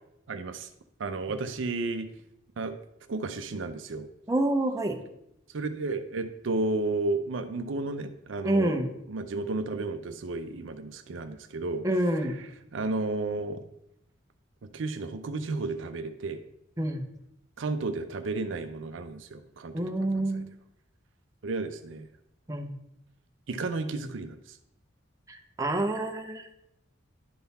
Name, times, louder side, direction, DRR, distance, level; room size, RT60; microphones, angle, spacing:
voice 1, 0.3-0.7 1.0-2.1 2.6-2.7 3.1-4.1 5.5-11.8 12.2-12.5 12.7-13.6 14.7-16.4 17.6-19.8 20.1-20.4 21.4-22.1 23.5-24.6, right 3 dB, 70° right, 9 dB, 0.5 m, -32 dB
voice 2, 4.3-5.0 8.4-8.9 11.8-12.3 16.8-17.0 19.7-20.4 22.5-22.7 25.3-26.5, right 1 dB, 15° right, 4 dB, 0.8 m, -27 dB
11.0 x 3.9 x 4.1 m, 0.79 s
head